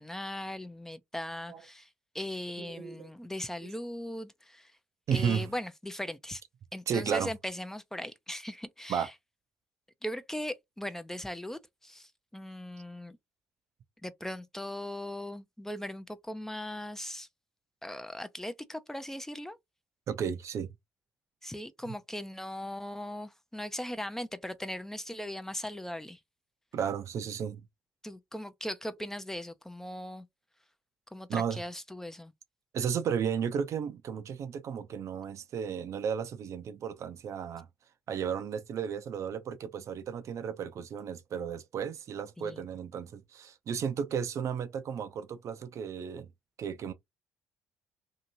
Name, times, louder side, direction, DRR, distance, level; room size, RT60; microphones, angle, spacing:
voice 1, 0.0-1.9 2.1-4.8 5.1-6.4 6.7-9.1 10.0-13.2 14.0-17.3 17.8-19.6 21.4-26.2 28.0-30.3 31.1-32.3 42.4-42.7, left 1 dB, 5° left, 0.5 m, -39 dB
voice 2, 2.6-3.1 5.1-5.5 6.9-7.3 8.9-9.1 20.1-20.7 26.7-27.6 31.3-31.6 32.7-37.7 38.1-46.3 46.6-46.9, right 7 dB, 55° right, 0.5 m, -33 dB
2.7 x 2.5 x 2.8 m
hypercardioid pair, 55°, 6 cm